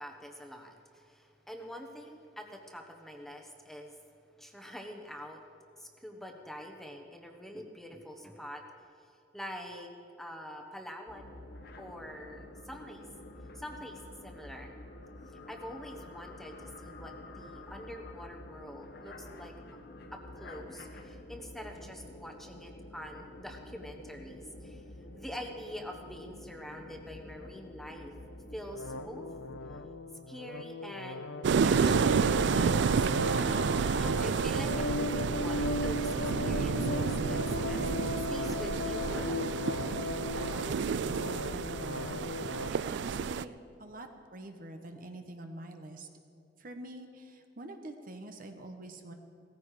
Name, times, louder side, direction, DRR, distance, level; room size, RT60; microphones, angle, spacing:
voice 1, 0.0-3.9 4.4-5.4 5.8-8.6 9.3-9.9 10.2-11.4 11.8-13.1 13.5-14.7 15.5-19.5 20.1-24.8 25.1-28.1 28.5-29.3 30.3-32.4 32.7-37.4 37.7-37.9 38.3-39.7, equal, ahead, 2 dB, 1.2 m, -45 dB
sound 1, 11.1-29.9, left 1 dB, 60° left, 1.3 m, -49 dB
sound 2, 28.7-42.7, left 2 dB, 80° left, 0.7 m, -36 dB
sound 3, 31.4-43.4, right 6 dB, 70° right, 0.4 m, -30 dB
voice 2, 40.5-46.1 46.6-49.1, right 1 dB, 50° right, 5 dB, 1.2 m, -46 dB
17.5 x 15.0 x 5.0 m, 2.6 s
head